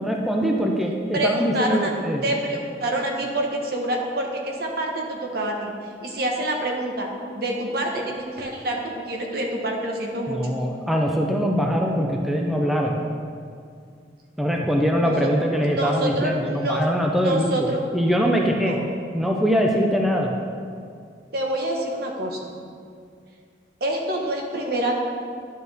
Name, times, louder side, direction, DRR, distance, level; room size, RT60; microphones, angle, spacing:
voice 1, 0.0-2.2 10.3-13.0 14.4-17.7 17.9-18.8 19.1-20.3, equal, ahead, 0 dB, 0.5 m, -22 dB
voice 2, 1.1-1.9 2.2-5.7 6.0-10.4 15.0-15.3 15.6-16.8 17.2-17.8 18.6-18.8 21.3-22.5 23.8-24.9, right 1 dB, 60° right, 1 dB, 1.1 m, -27 dB
10.5 x 6.5 x 3.5 m, 2.2 s
head